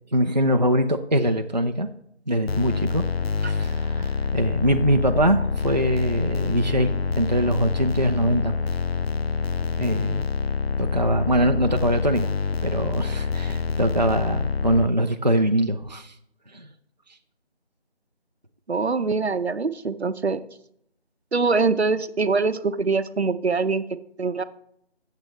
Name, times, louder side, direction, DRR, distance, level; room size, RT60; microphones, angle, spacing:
voice 1, 0.1-1.9 2.3-3.0 3.4-8.6 9.8-10.3 10.8-12.3 12.6-16.1 16.5-16.7, right 1 dB, 40° right, 6 dB, 0.5 m, -23 dB
sound 1, 2.5-14.9, left 5 dB, 65° left, 0.5 m, -26 dB
voice 2, 18.7-20.4 21.3-23.8 24.2-24.4, right 4 dB, 75° right, 13 dB, 0.8 m, -23 dB
14.5 x 7.5 x 3.1 m, 0.72 s
figure-of-eight pair, 175°, 33 cm